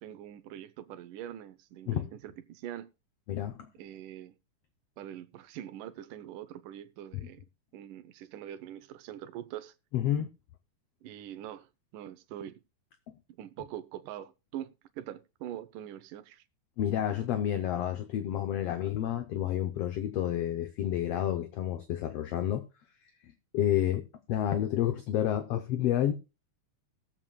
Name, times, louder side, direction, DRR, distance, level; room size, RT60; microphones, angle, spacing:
voice 1, 0.0-2.9 3.8-4.3 5.0-7.4 7.7-9.7 11.0-12.6 13.4-16.4, right 11 dB, 85° right, 2.3 m, -43 dB
voice 2, 3.3-3.7 7.1-7.2 9.9-10.3 16.8-22.6 23.5-24.0 24.3-26.1, left 11 dB, 75° left, 1.4 m, -29 dB
20.5 x 7.5 x 2.2 m
omnidirectional pair, 3.6 m